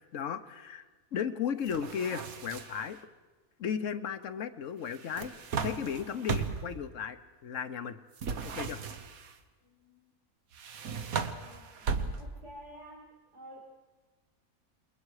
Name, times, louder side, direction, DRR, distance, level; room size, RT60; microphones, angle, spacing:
voice 1, 0.1-0.8 1.1-3.0 3.6-5.3 5.6-8.0 8.4-8.8, left 7 dB, 65° left, 11 dB, 1.2 m, -35 dB
sound 1, 1.7-2.9 4.9-6.8 8.2-9.3 10.5-12.5, right 5 dB, 75° right, 1.5 m, -36 dB
voice 2, 9.6-10.1 11.0-13.1 13.3-13.7, equal, 55° right, -3 dB, 2.9 m, -52 dB
28.0 x 21.5 x 4.8 m, 1.3 s
omnidirectional pair, 1.5 m